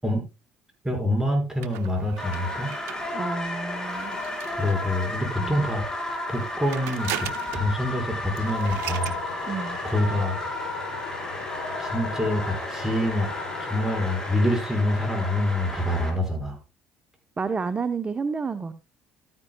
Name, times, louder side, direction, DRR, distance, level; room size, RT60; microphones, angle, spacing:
voice 1, 0.8-2.7 4.6-6.0 6.3-7.3 7.5-9.1 9.8-10.4 11.8-13.3 13.6-16.6, left 1 dB, 10° right, 2 dB, 5.2 m, -26 dB
sound 1, 1.6-5.3 6.2-7.8 8.1-8.2 8.4-9.2, right 12 dB, 75° right, 0.7 m, -38 dB
sound 2, 2.2-16.1, left 2 dB, 15° left, 4.4 m, -33 dB
voice 2, 3.1-4.2 5.4-5.7 9.4-9.8 17.4-18.7, right 5 dB, 30° right, 11 dB, 0.7 m, -30 dB
sound 3, 8.8-14.4, left 6 dB, 80° left, 1.1 m, -40 dB
13.0 x 9.8 x 2.2 m, 0.27 s
hypercardioid pair, 65°, 4 cm